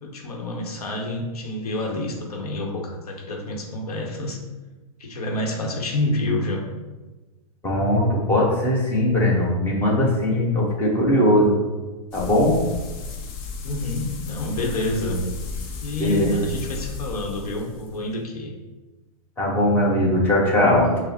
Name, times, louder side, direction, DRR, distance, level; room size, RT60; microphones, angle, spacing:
voice 1, 0.0-4.4 5.0-6.6 13.6-15.2 15.8-18.5, left 2 dB, 85° left, 1 dB, 0.9 m, -28 dB
voice 2, 7.6-11.6 12.1-12.5 16.0-16.4 19.4-21.0, left 1 dB, 10° left, -4 dB, 1.0 m, -20 dB
sound 1, 12.1-18.1, left 3 dB, 40° left, 0.6 m, -34 dB
4.8 x 2.0 x 4.1 m, 1.2 s
hypercardioid pair, 135°, 19 cm